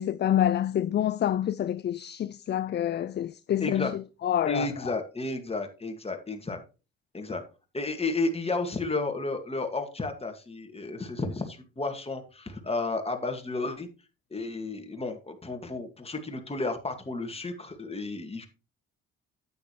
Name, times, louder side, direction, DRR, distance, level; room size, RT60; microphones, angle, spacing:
voice 1, 0.0-3.9 4.2-4.7, left 10 dB, 35° left, 0.4 m, -27 dB
voice 2, 3.6-3.9 4.5-6.6 7.1-7.4 7.7-13.9 14.3-18.5, left 3 dB, 20° left, 2.1 m, -32 dB
9.1 x 8.8 x 3.2 m
hypercardioid pair, 60°, 32 cm